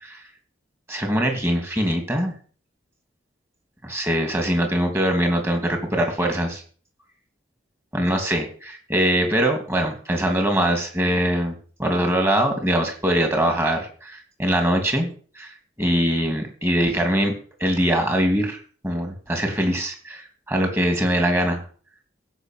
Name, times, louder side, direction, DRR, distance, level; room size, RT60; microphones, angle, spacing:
voice 1, 0.9-2.3 3.8-6.6 7.9-15.1 15.4-15.5 15.8-17.3 17.6-18.6 18.8-21.6, equal, 15° right, 3 dB, 2.9 m, -22 dB
16.0 x 6.0 x 7.6 m, 0.43 s
head